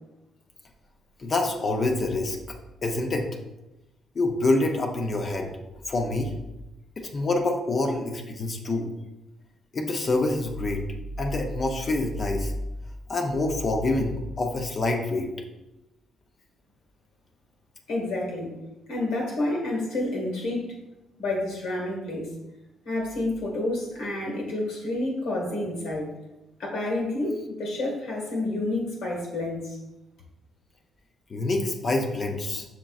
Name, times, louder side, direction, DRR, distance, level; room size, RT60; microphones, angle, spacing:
voice 1, 1.2-2.4 2.8-3.3 4.2-5.5 5.9-6.3 7.0-8.9 9.7-10.8 11.2-12.5 13.1-15.3 31.3-32.6, left 2 dB, 40° left, 2 dB, 0.6 m, -26 dB
voice 2, 17.9-18.5 18.9-20.7 21.2-22.3 22.8-26.1 26.6-29.8, left 2 dB, 85° left, -1 dB, 1.5 m, -29 dB
5.9 x 3.7 x 2.4 m, 0.98 s
cardioid pair, 90°, 0 cm